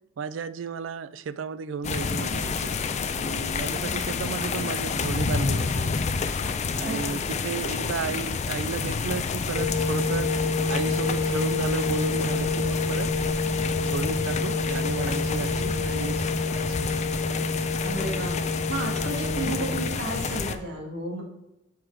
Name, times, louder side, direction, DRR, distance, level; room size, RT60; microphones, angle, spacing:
voice 1, 0.2-6.1 6.7-13.1 13.8-16.8, right 5 dB, 85° right, 0.4 m, -33 dB
sound 1, 1.8-20.6, left 5 dB, 35° left, 0.4 m, -29 dB
voice 2, 6.8-7.2 17.8-21.2, right 2 dB, 65° right, 1.6 m, -33 dB
sound 2, 9.5-19.9, left 3 dB, 25° right, 1.0 m, -28 dB
5.9 x 4.9 x 4.5 m
head